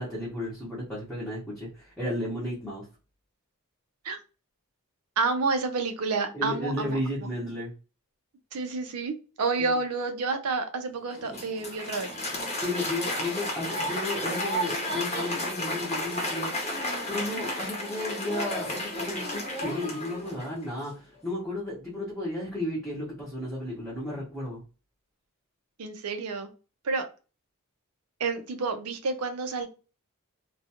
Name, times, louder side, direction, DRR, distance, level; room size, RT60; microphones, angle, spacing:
voice 1, 0.0-2.8 6.3-7.7 12.6-16.5 17.1-24.6, left 1 dB, ahead, -8 dB, 0.8 m, -33 dB
voice 2, 5.2-7.3 8.5-12.1 25.8-26.5 26.8-27.1 28.2-29.7, right 4 dB, 80° right, 7 dB, 0.6 m, -29 dB
Applause, 11.1-20.7, left 1 dB, 30° left, 0.8 m, -32 dB
2.5 x 2.3 x 2.7 m, 0.33 s
head